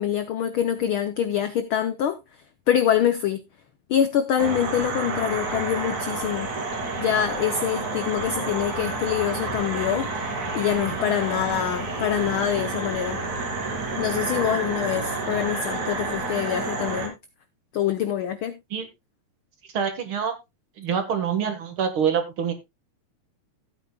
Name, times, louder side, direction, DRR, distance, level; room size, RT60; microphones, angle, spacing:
voice 1, 0.0-2.2 2.7-3.4 3.9-6.5 7.0-10.1 10.5-13.2 14.0-17.1 17.7-18.6, left 9 dB, 80° left, 1.2 m, -25 dB
sound 1, 4.4-17.1, right 3 dB, 75° right, 4.2 m, -29 dB
voice 2, 19.7-20.3 20.8-22.5, right 7 dB, 50° right, 2.0 m, -25 dB
15.5 x 9.1 x 2.2 m
omnidirectional pair, 3.3 m